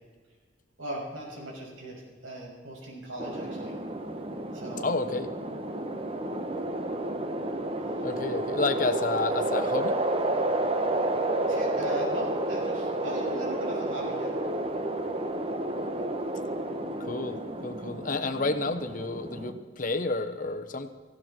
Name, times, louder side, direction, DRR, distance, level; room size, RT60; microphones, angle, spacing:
voice 1, 0.8-3.7 4.5-4.9 8.0-8.1 11.5-14.3, right 1 dB, 85° right, -3 dB, 6.4 m, -38 dB
sound 1, 3.2-19.5, right 1 dB, 30° right, 1.1 m, -31 dB
voice 2, 4.8-5.3 8.0-10.0 17.0-20.9, left 3 dB, 40° left, 7 dB, 1.0 m, -30 dB
18.5 x 16.0 x 4.4 m, 1.5 s
head